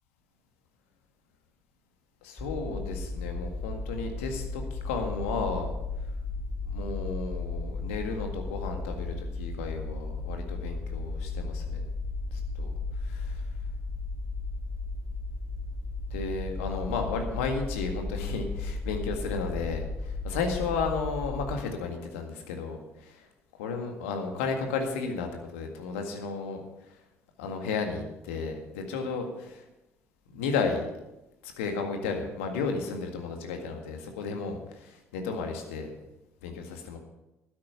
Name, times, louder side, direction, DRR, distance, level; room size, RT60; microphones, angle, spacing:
voice 1, 2.2-5.7 6.7-11.8 12.6-12.7 13.1-13.4 16.1-23.2 23.6-26.6 27.4-29.6 30.3-30.8 31.4-35.9 36.4-37.0, left 4 dB, 75° left, 4 dB, 1.9 m, -33 dB
sound 1, 2.4-21.6, left 3 dB, 15° left, 3.3 m, -35 dB
12.5 x 9.8 x 5.8 m, 0.94 s
figure-of-eight pair, 50°, 7 cm